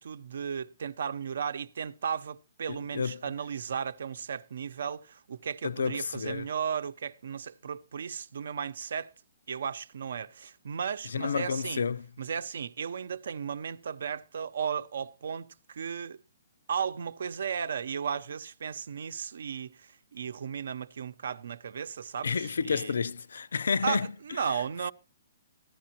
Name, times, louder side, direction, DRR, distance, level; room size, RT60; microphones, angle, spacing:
voice 1, 0.0-9.1 9.5-11.8 12.2-16.2 16.7-22.9 23.8-24.9, right 7 dB, 70° right, 0.8 m, -35 dB
voice 2, 5.6-6.5 11.1-12.1 22.2-24.6, left 5 dB, 85° left, 0.5 m, -30 dB
15.0 x 11.5 x 3.0 m
hypercardioid pair, 160°, 0 cm